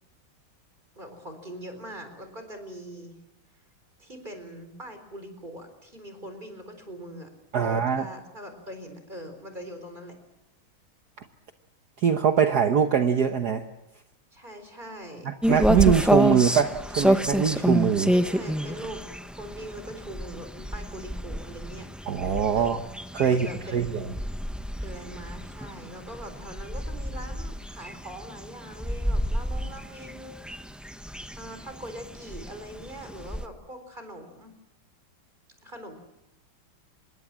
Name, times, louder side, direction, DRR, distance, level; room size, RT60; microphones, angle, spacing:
voice 1, 1.0-3.2 4.0-7.3 7.6-10.2 14.3-15.3 18.1-19.1 19.4-21.9 22.5-22.8 23.3-24.2 24.8-30.8 31.4-34.5 35.6-35.9, right 1 dB, 20° right, 7 dB, 4.2 m, -42 dB
voice 2, 7.5-8.1 12.0-13.6 15.2-18.1 22.1-22.8 23.1-23.5 23.7-24.0, right 7 dB, 55° right, 7 dB, 1.5 m, -22 dB
sound 1, 15.4-33.5, equal, ahead, 0.3 m, -29 dB
26.0 x 21.5 x 7.4 m, 0.89 s
omnidirectional pair, 2.3 m